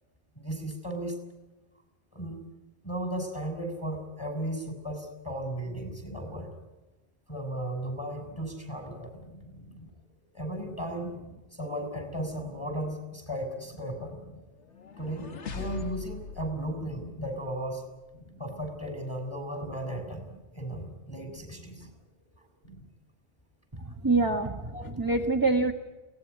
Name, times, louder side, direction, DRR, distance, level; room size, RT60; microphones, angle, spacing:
voice 1, 0.4-1.2 2.1-2.4 2.8-6.5 7.3-9.1 10.3-11.1 11.5-14.2 15.0-17.9 18.4-20.3 20.5-21.9 24.7-24.8, right 1 dB, 25° left, 6 dB, 6.2 m, -35 dB
sound 1, 8.1-22.9, equal, 50° left, 5.0 m, -52 dB
sound 2, 14.6-17.7, left 5 dB, 90° left, 1.6 m, -41 dB
voice 2, 23.7-25.7, right 3 dB, 20° right, 4 dB, 1.2 m, -26 dB
23.0 x 18.5 x 9.4 m, 1.1 s
omnidirectional pair, 1.1 m